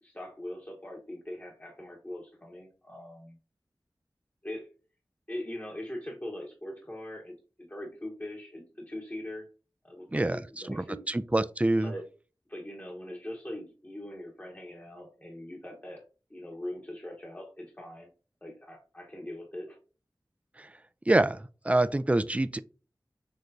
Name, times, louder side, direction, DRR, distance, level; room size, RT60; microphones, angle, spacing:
voice 1, 0.0-3.4 4.4-4.7 5.3-9.5 9.8-11.0 11.8-12.0 12.5-16.0 16.3-18.1 18.4-19.8, left 1 dB, 20° left, 1.1 m, -41 dB
voice 2, 10.7-11.9 20.6-20.7 21.1-22.6, right 2 dB, 15° right, 0.4 m, -26 dB
6.5 x 3.1 x 2.6 m
wide cardioid pair, 45°, 8 cm